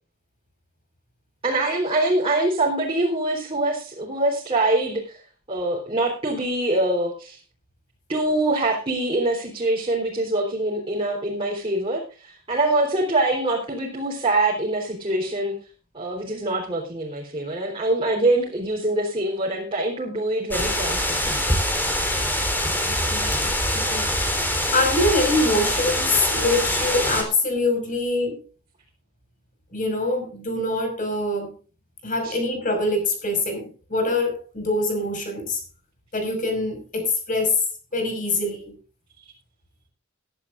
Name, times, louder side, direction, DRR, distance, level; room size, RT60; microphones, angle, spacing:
voice 1, 1.4-5.2 5.5-7.4 8.1-15.5 15.9-21.5 32.2-32.4, right 2 dB, 25° right, 3.7 m, -24 dB
sound 1, 20.5-27.2, left 1 dB, 10° left, 3.7 m, -24 dB
voice 2, 22.9-23.3 23.7-24.1 24.5-28.4 29.7-31.5 32.0-33.6 33.9-35.6 36.1-37.6 37.9-38.7, left 2 dB, 40° left, 5.5 m, -24 dB
21.0 x 11.5 x 2.5 m
head